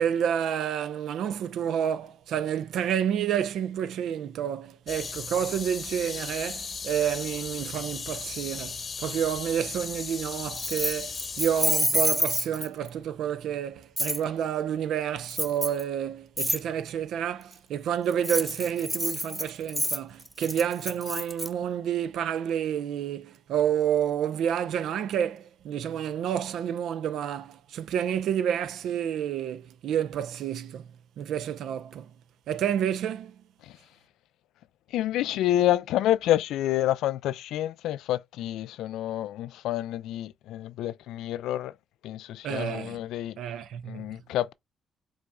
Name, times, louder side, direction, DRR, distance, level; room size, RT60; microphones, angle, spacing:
voice 1, 0.0-30.9 31.2-32.1 32.5-33.3 42.4-43.0 43.4-44.1, right 9 dB, 75° right, 0.5 m, -29 dB
sound 1, 4.9-11.7, left 5 dB, 40° left, 1.0 m, -37 dB
Keys jangling, 10.6-12.9 14.0-14.2 15.3-15.8 16.4-16.6 18.1-21.5, equal, ahead, 0.9 m, -28 dB
voice 2, 34.9-41.7 42.0-43.4 43.9-44.5, left 13 dB, 85° left, 0.3 m, -28 dB
5.2 x 3.5 x 2.2 m
cardioid pair, 90°, 0 cm